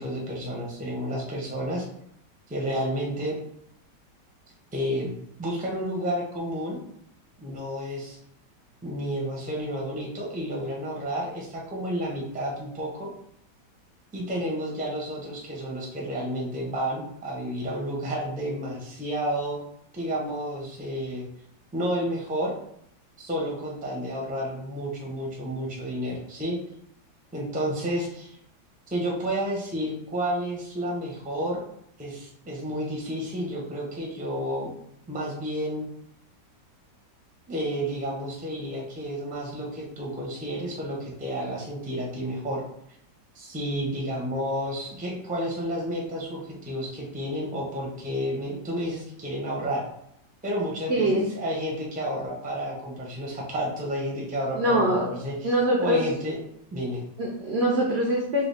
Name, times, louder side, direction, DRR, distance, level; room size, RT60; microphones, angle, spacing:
voice 1, 0.0-1.9 2.5-3.4 4.7-5.1 5.4-6.8 7.4-8.2 8.8-13.1 14.1-19.6 19.9-21.2 21.7-22.5 23.2-26.6 27.3-28.3 28.9-31.6 32.0-34.7 35.1-35.9 37.5-42.6 43.3-49.8 50.4-55.5 55.8-56.3 56.7-57.0, equal, 10° right, -3 dB, 0.4 m, -31 dB
voice 2, 50.9-51.2 54.6-55.1 55.4-56.0 57.2-58.5, right 1 dB, 65° right, -1 dB, 0.6 m, -23 dB
4.8 x 2.3 x 3.4 m, 0.73 s
omnidirectional pair, 1.9 m